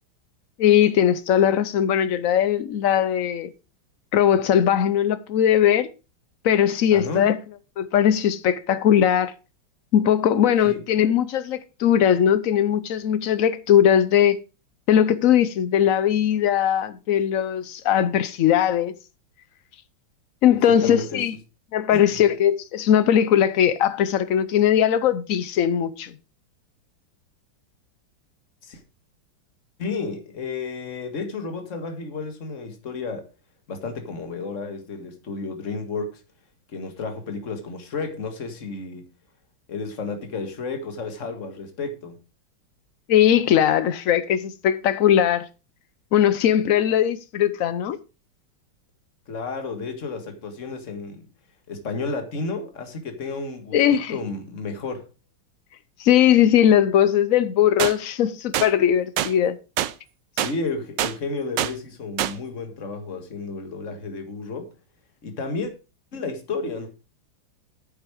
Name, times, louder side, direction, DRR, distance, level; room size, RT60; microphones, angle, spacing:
voice 1, 0.6-3.5 4.1-5.9 6.4-7.4 7.8-9.3 9.9-14.4 14.9-18.9 20.4-21.3 21.7-26.1 43.1-45.5 46.1-48.0 53.7-54.2 56.0-59.6, left 10 dB, 90° left, 0.7 m, -19 dB
voice 2, 6.9-7.3 10.6-10.8 20.5-21.3 21.9-22.2 28.6-28.8 29.8-33.3 33.7-36.2 36.7-39.0 39.7-42.2 49.3-51.3 51.7-55.1 60.4-64.7 65.2-65.7 66.1-66.9, left 4 dB, 40° left, 2.0 m, -32 dB
sound 1, 57.8-57.9 58.5-58.7 59.2-59.3 59.8-59.9 60.4-60.5 61.0-61.1 61.6-61.7 62.2-62.3, right 12 dB, 70° right, 1.2 m, -24 dB
9.4 x 8.1 x 4.9 m
omnidirectional pair, 2.3 m